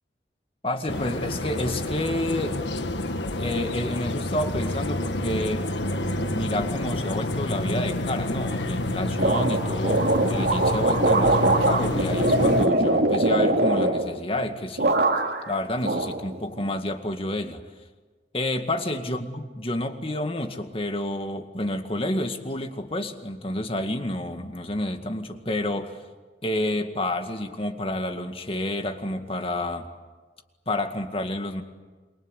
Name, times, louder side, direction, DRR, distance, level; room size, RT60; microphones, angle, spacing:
voice 1, 0.6-2.6 3.4-5.7 6.3-15.1 15.5-17.6 18.3-26.0 26.4-29.9 30.7-31.6, left 1 dB, 35° left, 6 dB, 2.0 m, -29 dB
sound 1, 0.9-12.7, left 2 dB, 85° left, 1.7 m, -28 dB
sound 2, 9.2-14.5 14.8-15.5 15.8-16.7, right 2 dB, 70° right, 2.3 m, -22 dB
28.0 x 23.0 x 8.3 m, 1.3 s
head